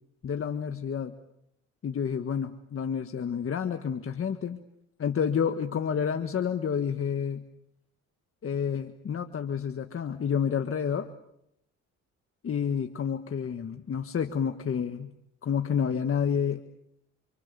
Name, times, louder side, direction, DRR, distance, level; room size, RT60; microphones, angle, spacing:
voice 1, 0.2-1.1 1.8-4.6 5.0-7.5 8.4-11.1 12.4-15.1 15.4-16.6, left 7 dB, 45° left, 7 dB, 1.7 m, -29 dB
27.5 x 27.5 x 7.0 m, 0.78 s
cardioid pair, 90°, 30 cm